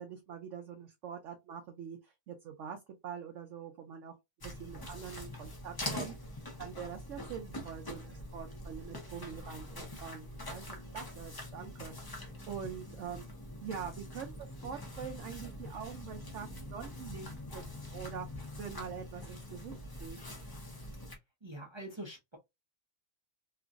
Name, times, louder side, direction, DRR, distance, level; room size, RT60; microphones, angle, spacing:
voice 1, 0.0-4.1 4.4-6.1 6.6-13.2 13.6-17.6 17.9-20.2, right 7 dB, 65° right, 0.8 m, -44 dB
sound 1, 4.4-21.2, left 1 dB, 30° left, 0.4 m, -44 dB
voice 2, 21.4-22.4, right 1 dB, 35° right, 0.4 m, -44 dB
2.9 x 2.5 x 2.4 m
omnidirectional pair, 1.6 m